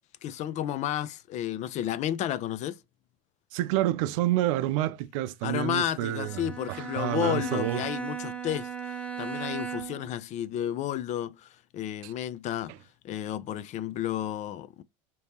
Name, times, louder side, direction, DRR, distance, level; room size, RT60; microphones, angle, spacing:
voice 1, 0.2-2.8 5.4-12.7 13.0-14.8, left 11 dB, 45° left, 0.4 m, -32 dB
voice 2, 3.5-6.4 6.7-7.8 12.0-12.1, right 14 dB, 75° right, 0.5 m, -28 dB
Bowed string instrument, 6.1-10.2, right 7 dB, 10° left, 1.5 m, -37 dB
3.4 x 2.8 x 2.9 m
supercardioid pair, 110°, 17 cm